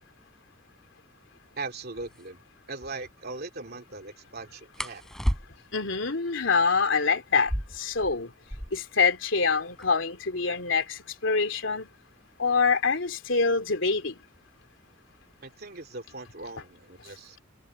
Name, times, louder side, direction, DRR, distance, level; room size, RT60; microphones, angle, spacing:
voice 1, 1.5-2.4 2.7-5.0 15.4-17.4, right 3 dB, 55° right, 2.8 m, -39 dB
sound 1, 2.1-2.3 4.7-5.9 7.3-9.0 9.3-9.4 9.6-10.1 10.8-13.3 14.3-14.6 15.1-15.5 15.9-16.6, equal, ahead, 3.8 m, -35 dB
voice 2, 5.7-8.3 8.7-11.9 12.4-14.2, left 4 dB, 80° left, 2.9 m, -25 dB
head